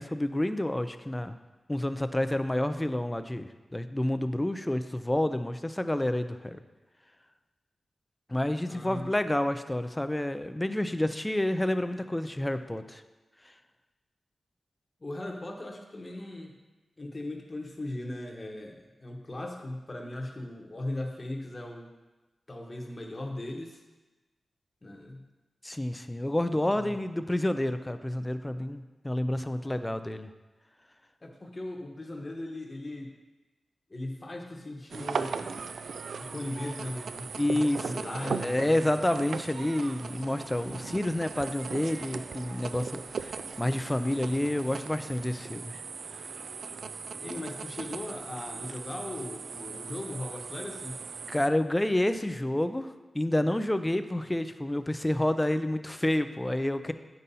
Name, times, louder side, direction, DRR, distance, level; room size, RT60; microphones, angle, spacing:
voice 1, 0.0-1.4 1.7-6.6 8.3-13.0 25.6-30.3 37.4-45.8 51.3-56.9, left 1 dB, 10° left, 10 dB, 0.4 m, -29 dB
voice 2, 8.7-9.1 15.0-16.5 17.0-21.9 22.5-23.8 24.8-25.2 26.4-27.0 29.6-29.8 31.2-33.1 33.9-35.6 36.1-38.8 47.1-51.0, left 1 dB, 30° left, 2 dB, 1.0 m, -38 dB
sound 1, 34.9-51.5, right 5 dB, 80° right, 0.3 m, -38 dB
8.9 x 5.4 x 4.1 m, 1.1 s
wide cardioid pair, 115°, 0 cm